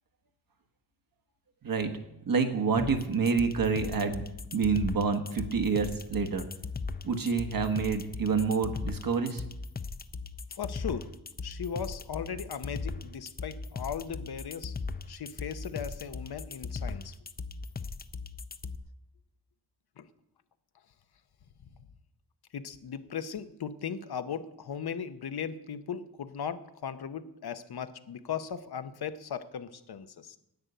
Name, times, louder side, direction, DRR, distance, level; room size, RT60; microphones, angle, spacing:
voice 1, 2.3-4.2 4.5-6.4 7.0-9.4, right 5 dB, 60° right, 6 dB, 1.4 m, -28 dB
sound 1, 2.8-18.8, left 4 dB, 25° left, 0.5 m, -38 dB
voice 2, 10.5-11.1 11.4-14.8 15.1-17.1 20.0-20.1 22.5-30.4, left 7 dB, 75° left, 10 dB, 0.9 m, -37 dB
10.5 x 9.1 x 8.1 m, 0.85 s
wide cardioid pair, 145°, 39 cm